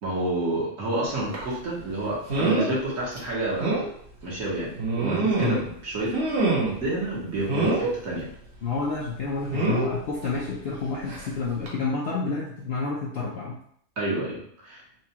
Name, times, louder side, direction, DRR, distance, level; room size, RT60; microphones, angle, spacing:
voice 1, 0.0-3.8 4.2-6.1 6.8-8.3 14.0-14.8, right 1 dB, 65° right, -5 dB, 1.5 m, -29 dB
sound 1, 1.3-1.5 2.3-2.7 3.2-3.3 3.6-3.9 4.8-5.7 6.1-6.9 7.5-7.9 9.5-9.9 11.1-11.3 11.6-11.7, right 3 dB, 50° right, 1.1 m, -25 dB
voice 2, 8.6-13.6, left 4 dB, 60° left, -4 dB, 0.6 m, -29 dB
4.2 x 2.2 x 2.8 m, 0.65 s
omnidirectional pair, 1.6 m